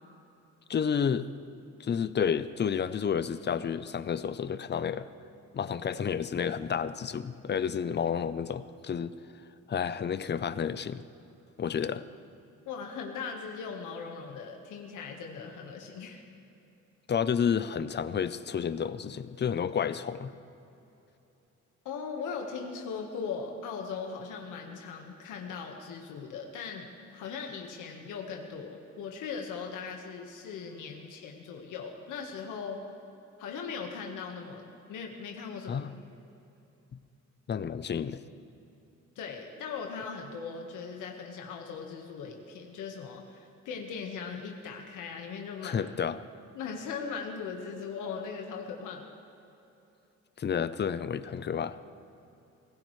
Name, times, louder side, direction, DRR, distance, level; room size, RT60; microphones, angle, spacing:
voice 1, 0.7-1.3 1.8-5.1 5.5-9.1 9.7-11.0 11.6-12.0 17.1-20.3 35.7-35.9 37.5-38.2 45.6-46.2 50.4-51.8, left 7 dB, 35° left, 14 dB, 0.7 m, -30 dB
voice 2, 12.7-16.2 21.8-32.8 33.4-34.6 34.9-35.8 39.1-45.8 46.5-49.1, left 5 dB, 85° left, 2 dB, 1.5 m, -39 dB
25.0 x 16.5 x 3.3 m, 2.9 s
cardioid pair, 90°, 30 cm